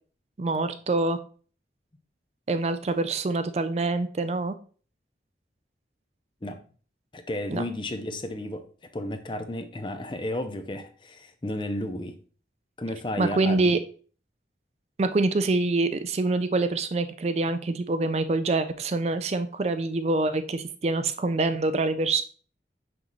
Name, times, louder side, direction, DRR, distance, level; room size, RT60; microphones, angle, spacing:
voice 1, 0.4-1.2 2.5-4.6 7.5-7.6 13.2-13.8 15.0-22.2, right 3 dB, 35° right, 0.4 m, -25 dB
voice 2, 7.1-8.7 8.9-12.2 12.8-13.7, left 1 dB, 25° left, 0.6 m, -33 dB
6.1 x 5.5 x 3.0 m
head